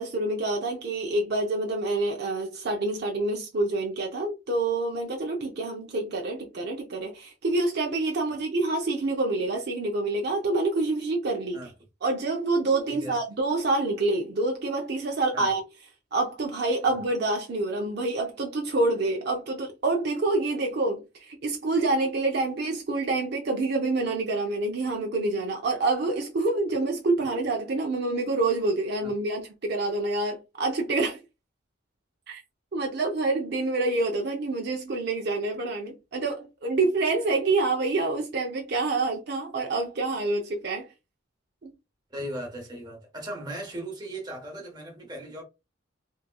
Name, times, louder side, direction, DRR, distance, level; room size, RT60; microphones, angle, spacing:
voice 1, 0.0-11.6 12.0-15.6 16.1-31.2 32.3-32.4 32.7-40.9 41.6-41.7, right 2 dB, 55° right, 0.5 m, -27 dB
voice 2, 12.9-13.2 15.3-15.5 16.8-17.0 29.0-29.1 42.1-45.4, right 1 dB, 20° right, 1.0 m, -38 dB
3.6 x 2.8 x 2.2 m
head